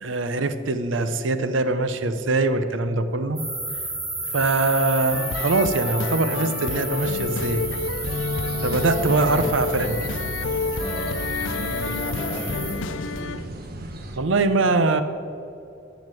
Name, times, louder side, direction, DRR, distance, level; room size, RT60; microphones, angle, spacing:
voice 1, 0.0-3.4 4.3-7.6 8.6-10.0 14.2-15.0, right 3 dB, 80° right, 11 dB, 0.7 m, -22 dB
sound 1, 3.4-12.7, right 2 dB, 25° right, 3.3 m, -33 dB
sound 2, 5.1-13.5, left 4 dB, 80° left, 0.4 m, -30 dB
sound 3, 7.0-14.2, right 1 dB, 55° right, 1.1 m, -35 dB
voice 2, 9.0-9.6 10.7-13.5, left 1 dB, 25° left, 4 dB, 1.2 m, -35 dB
11.0 x 7.3 x 7.5 m, 2.6 s
head